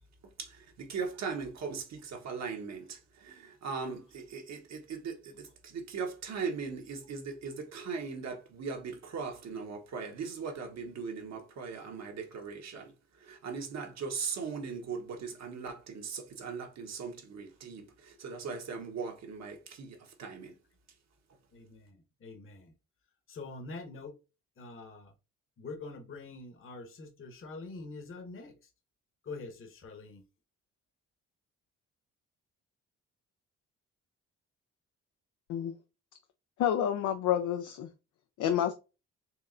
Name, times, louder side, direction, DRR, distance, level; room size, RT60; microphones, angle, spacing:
voice 1, 0.4-12.9 13.2-20.6, right 5 dB, 60° right, 1.3 m, -39 dB
voice 2, 21.5-22.7 23.3-24.2 24.6-25.1 25.6-28.5 29.2-30.2, left 3 dB, 45° left, 1.1 m, -45 dB
voice 3, 36.6-37.9 38.4-38.7, left 10 dB, 75° left, 0.6 m, -29 dB
4.6 x 3.1 x 2.5 m
cardioid pair, 90°, 30 cm